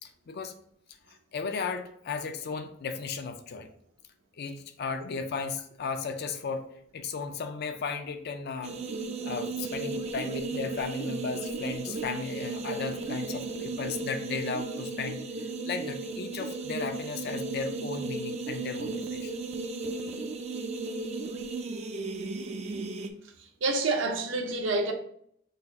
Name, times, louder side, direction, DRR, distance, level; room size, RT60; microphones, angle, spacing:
voice 1, 0.0-0.5 1.1-3.7 4.4-8.8 9.2-19.3, left 5 dB, 55° left, 0.4 m, -35 dB
sound 1, 8.6-23.1, right 3 dB, 35° right, 0.4 m, -35 dB
voice 2, 23.6-24.9, right 3 dB, 75° right, 0.7 m, -27 dB
4.0 x 2.4 x 3.9 m
head